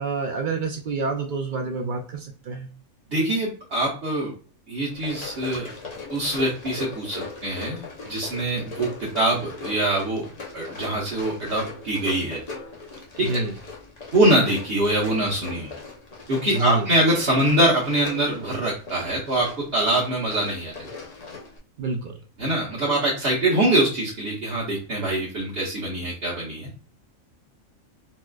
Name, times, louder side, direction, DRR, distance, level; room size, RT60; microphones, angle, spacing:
voice 1, 0.0-2.7 13.2-13.5 16.5-16.9 21.8-22.2, right 3 dB, 75° right, 3 dB, 0.4 m, -27 dB
voice 2, 3.1-4.3 4.7-5.7 6.1-10.2 10.5-12.4 13.2-13.3 14.1-15.7 16.3-20.9 22.4-26.7, right 1 dB, 50° right, -7 dB, 1.1 m, -24 dB
Run, 4.9-21.6, left 3 dB, 40° left, 0.7 m, -39 dB
4.1 x 2.4 x 2.3 m, 0.40 s
omnidirectional pair, 1.4 m